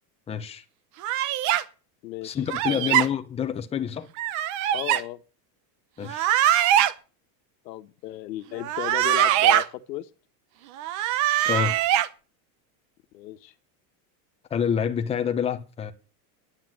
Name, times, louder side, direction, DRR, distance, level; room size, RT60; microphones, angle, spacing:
voice 1, 0.3-0.6 2.2-4.1 6.0-6.3 11.5-11.8 14.5-15.9, left 8 dB, 10° left, 0.9 m, -27 dB
sound 1, 1.0-1.6 2.5-3.1 4.2-5.0 6.0-6.9 8.6-9.6 10.8-12.1, right 12 dB, 35° right, 0.9 m, -22 dB
voice 2, 2.0-2.4 2.7-3.0 4.7-5.2 7.6-10.1 13.1-13.5, left 14 dB, 85° left, 1.4 m, -35 dB
9.7 x 9.3 x 7.7 m
supercardioid pair, 160°, 49 cm